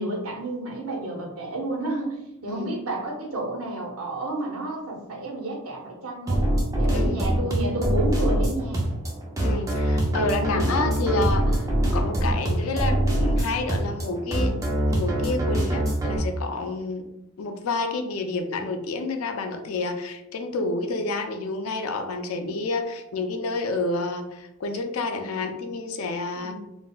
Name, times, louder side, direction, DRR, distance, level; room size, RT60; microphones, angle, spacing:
voice 1, 0.0-6.5 6.8-8.8 26.4-26.6, right 1 dB, 75° right, -1 dB, 0.8 m, -30 dB
sound 1, 6.3-16.2, right 1 dB, 15° right, 0.4 m, -24 dB
voice 2, 6.9-7.3 9.4-14.6 14.9-17.1 17.4-26.6, left 3 dB, 70° left, 6 dB, 0.4 m, -29 dB
3.8 x 2.0 x 2.3 m, 0.87 s
head